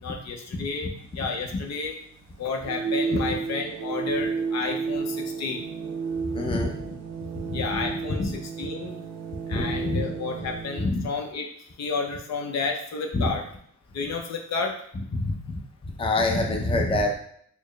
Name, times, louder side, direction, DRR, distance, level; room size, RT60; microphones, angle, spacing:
voice 1, 0.0-2.0 2.4-5.6 7.5-8.9 9.5-11.5 11.8-13.4 13.9-14.7, left 4 dB, 60° left, 3 dB, 0.7 m, -31 dB
voice 2, 0.5-0.9 1.5-1.6 3.1-3.2 6.3-6.7 7.4-7.9 8.2-8.3 9.5-10.0 10.8-11.0 13.1-13.4 15.1-17.2, left 2 dB, 20° left, 2 dB, 0.6 m, -26 dB
sound 1, 1.0-10.9, right 5 dB, 65° right, 0.6 m, -32 dB
4.4 x 2.1 x 3.2 m, 0.66 s
cardioid pair, 90°, 30 cm